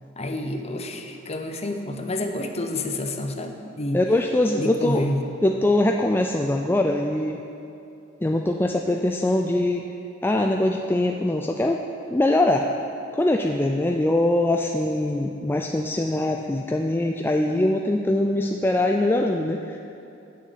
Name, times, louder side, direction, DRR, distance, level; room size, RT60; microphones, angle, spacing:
voice 1, 0.2-4.0 4.6-5.2, left 1 dB, 35° left, 5 dB, 0.9 m, -29 dB
voice 2, 3.9-5.1 5.4-7.4 8.2-9.8 10.2-12.7 13.1-19.8, left 1 dB, 10° left, 2 dB, 0.4 m, -22 dB
9.2 x 6.8 x 8.5 m, 2.8 s
head